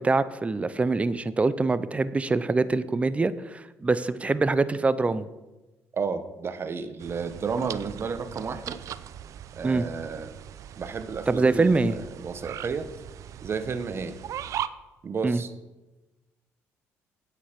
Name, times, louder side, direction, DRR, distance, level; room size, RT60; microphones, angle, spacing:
voice 1, 0.0-5.3 9.6-9.9 11.3-12.0 15.2-15.4, right 3 dB, 20° right, 15 dB, 0.6 m, -24 dB
voice 2, 5.9-8.8 9.6-10.3 10.8-12.9 13.4-14.2 15.0-15.5, right 5 dB, 40° right, 11 dB, 1.1 m, -32 dB
sound 1, 7.0-14.7, right 10 dB, 65° right, 0.5 m, -39 dB
8.9 x 8.0 x 5.8 m, 1.1 s
supercardioid pair, 70°, 6 cm